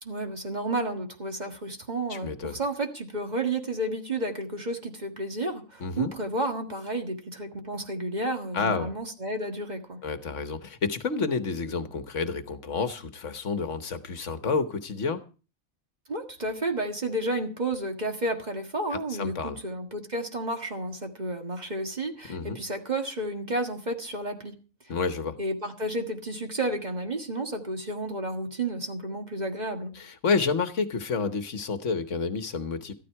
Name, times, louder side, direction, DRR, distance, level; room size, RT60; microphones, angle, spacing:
voice 1, 0.0-10.0 16.1-24.5 25.4-29.9, right 1 dB, 35° right, 1.8 m, -31 dB
voice 2, 2.1-2.6 5.8-6.1 8.5-8.9 10.0-15.2 18.9-19.6 22.3-22.6 24.9-25.4 29.9-32.9, left 4 dB, 65° left, 1.4 m, -29 dB
13.5 x 12.5 x 4.6 m
omnidirectional pair, 1.4 m